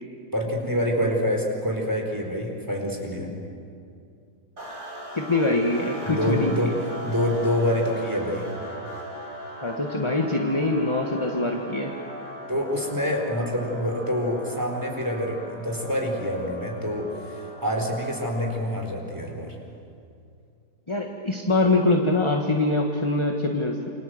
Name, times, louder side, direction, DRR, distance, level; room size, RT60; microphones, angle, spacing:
voice 1, 0.3-3.3 6.0-6.7 7.0-8.5 12.5-19.6, equal, 10° right, 1 dB, 4.5 m, -26 dB
sound 1, 4.6-18.8, equal, 70° right, 6.8 m, -39 dB
voice 2, 5.1-6.7 9.6-11.9 20.9-23.9, left 2 dB, 15° left, 2 dB, 1.7 m, -24 dB
28.5 x 26.0 x 7.9 m, 2.5 s
omnidirectional pair, 1.8 m